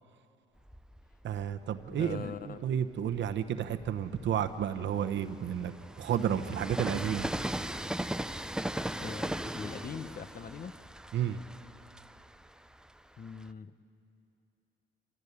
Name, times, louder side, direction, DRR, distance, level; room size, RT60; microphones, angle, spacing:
Train, 0.6-2.3 2.9-13.5, right 1 dB, 5° right, 0.5 m, -39 dB
voice 1, 1.2-7.3 11.1-11.4, right 9 dB, 65° right, 9 dB, 1.0 m, -32 dB
voice 2, 1.9-2.6 9.0-10.7 13.2-13.8, left 6 dB, 45° left, 12 dB, 0.9 m, -41 dB
26.5 x 15.0 x 8.5 m, 2.8 s
cardioid pair, 90°, 20 cm